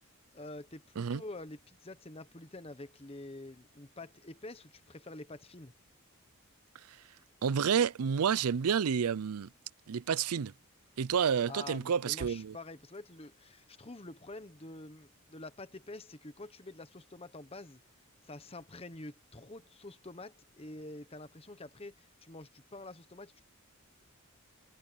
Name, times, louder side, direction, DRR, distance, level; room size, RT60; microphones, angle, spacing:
voice 1, 0.3-5.7 11.5-17.8 18.2-23.4, left 2 dB, 25° left, 1.1 m, -47 dB
voice 2, 7.4-9.5 9.9-10.5 11.0-12.5, right 7 dB, 90° right, 0.5 m, -29 dB
head